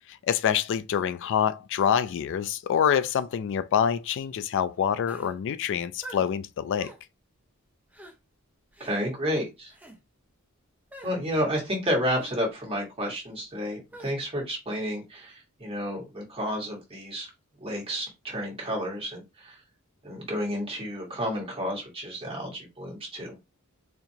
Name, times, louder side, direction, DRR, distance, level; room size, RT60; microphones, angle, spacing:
voice 1, 0.1-6.9, left 8 dB, 60° left, 0.3 m, -26 dB
sound 1, 5.1-5.3 6.0-6.3 6.8-7.0 7.9-8.1 8.7-8.9 9.7-10.0 10.9-11.1 12.1-12.4 13.9-14.1, right 1 dB, 10° right, 0.9 m, -45 dB
voice 2, 8.8-9.7 11.0-17.3 17.6-19.5 20.0-23.4, equal, 25° right, 1.8 m, -31 dB
4.1 x 2.8 x 2.8 m
head